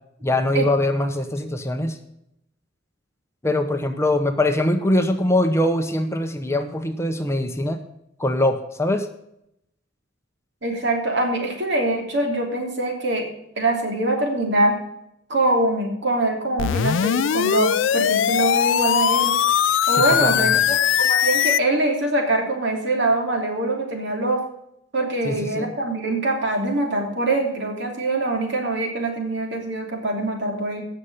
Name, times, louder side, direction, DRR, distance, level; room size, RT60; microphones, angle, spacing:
voice 1, 0.2-2.0 3.4-7.8 8.2-9.1 20.2-20.6 25.2-25.7, left 1 dB, 15° left, 6 dB, 0.9 m, -22 dB
voice 2, 10.6-13.2 13.6-14.7 15.3-19.3 19.9-24.4 24.9-30.8, right 2 dB, 65° right, 1 dB, 3.2 m, -23 dB
sound 1, 16.6-21.6, left 9 dB, 75° left, 0.4 m, -20 dB
17.0 x 6.6 x 5.6 m, 0.80 s
head